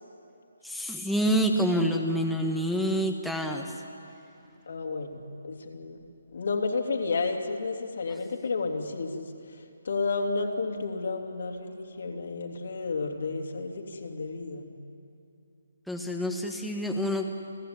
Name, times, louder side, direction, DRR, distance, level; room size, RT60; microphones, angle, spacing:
voice 1, 0.6-3.7 15.9-17.3, equal, ahead, 0 dB, 1.3 m, -27 dB
voice 2, 4.7-6.0 6.3-9.3 9.8-14.7, left 4 dB, 65° left, 2 dB, 3.2 m, -31 dB
29.0 x 15.5 x 9.7 m, 2.8 s
hypercardioid pair, 155°, 0 cm